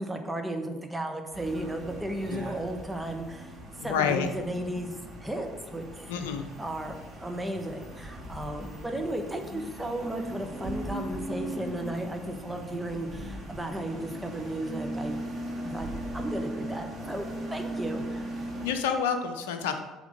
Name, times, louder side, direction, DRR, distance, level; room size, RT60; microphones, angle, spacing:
voice 1, 0.0-6.1 6.6-6.9 7.2-15.2 15.6-18.4, right 1 dB, 10° right, 4 dB, 1.1 m, -35 dB
sound 1, 1.3-18.7, right 1 dB, 40° right, 2.2 m, -39 dB
voice 2, 3.8-4.3 6.1-6.5 18.6-19.8, left 7 dB, 75° left, 7 dB, 0.5 m, -28 dB
sound 2, 7.3-17.4, equal, 55° right, 1.6 m, -46 dB
7.0 x 3.6 x 5.1 m, 1.2 s
figure-of-eight pair, 55°, 0 cm